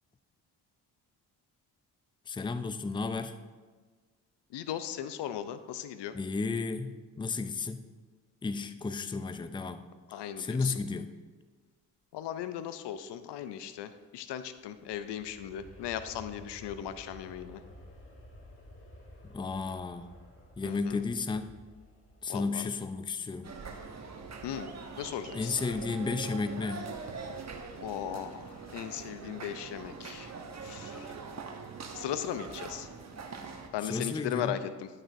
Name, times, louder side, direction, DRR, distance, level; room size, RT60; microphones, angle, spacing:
voice 1, 2.3-3.4 6.1-7.8 8.4-9.8 10.4-11.1 19.2-20.1 20.6-21.5 22.2-23.5 25.3-26.9 33.8-34.6, left 4 dB, 10° left, 11 dB, 0.5 m, -33 dB
voice 2, 4.5-6.2 10.1-10.7 12.1-17.6 20.6-21.0 22.3-22.7 24.4-24.7 25.0-25.5 27.8-30.3 30.6-31.1 31.9-32.9 33.7-34.9, left 10 dB, 70° left, 12 dB, 0.6 m, -37 dB
Aircraft, 14.3-25.1 25.6-25.7, left 1 dB, 30° left, 1.9 m, -54 dB
sound 1, 23.4-33.7, right 4 dB, 40° right, 1.1 m, -43 dB
11.0 x 6.4 x 2.6 m, 1.4 s
supercardioid pair, 50°, 43 cm